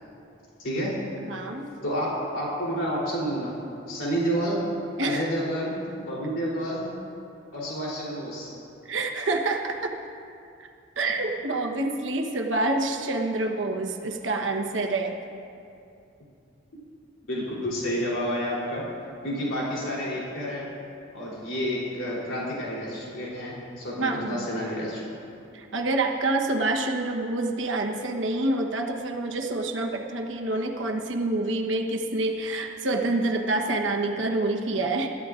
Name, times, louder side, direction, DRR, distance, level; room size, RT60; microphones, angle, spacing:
voice 1, 0.6-0.9 1.8-3.6 3.9-4.6 5.0-6.8 7.5-8.5 17.3-18.8 19.2-20.7 21.1-25.0, equal, 75° left, -5 dB, 3.4 m, -29 dB
voice 2, 1.2-1.7 5.0-5.2 8.8-9.9 10.6-10.7 11.0-15.1 24.0-24.5 25.5-35.1, right 2 dB, 70° right, 3 dB, 1.1 m, -27 dB
22.0 x 13.5 x 2.5 m, 2.5 s
head